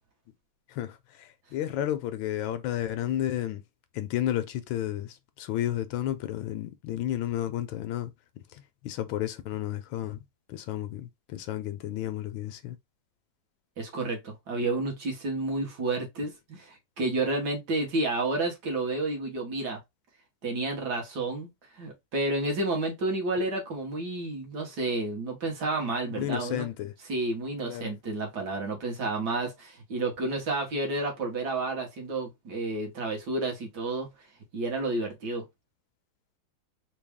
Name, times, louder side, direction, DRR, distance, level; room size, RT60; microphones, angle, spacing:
voice 1, 0.7-3.6 3.9-12.8 26.0-26.9 27.7-27.9, left 12 dB, 80° left, 1.4 m, -32 dB
voice 2, 13.8-19.8 20.4-21.5 21.7-26.6 27.1-34.1 34.5-35.4, right 2 dB, 60° right, 1.7 m, -30 dB
4.0 x 2.3 x 3.5 m
omnidirectional pair, 2.1 m